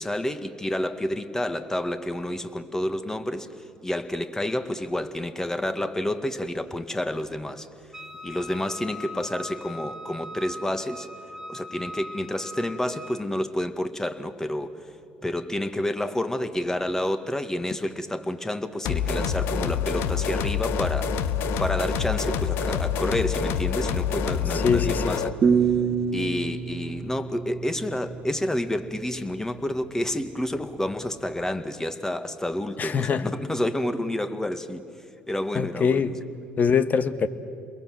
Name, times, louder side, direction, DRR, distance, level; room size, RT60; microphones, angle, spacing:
voice 1, 0.0-7.7 8.2-11.1 11.5-14.7 15.2-21.2 21.6-25.4 26.1-34.8 35.3-36.1, left 1 dB, 10° left, 9 dB, 1.9 m, -29 dB
Wind instrument woodwind instrument, 7.9-13.3, left 1 dB, 5° right, 2.9 m, -40 dB
sound 1, 18.9-25.4, left 7 dB, 70° left, 1.0 m, -26 dB
voice 2, 24.6-25.1 32.8-33.2 35.5-36.1 36.6-37.3, left 6 dB, 45° left, 12 dB, 1.4 m, -23 dB
sound 2, 25.4-28.4, right 6 dB, 45° right, 1.4 m, -25 dB
29.5 x 22.0 x 7.8 m, 2.6 s
hypercardioid pair, 60°, 4 cm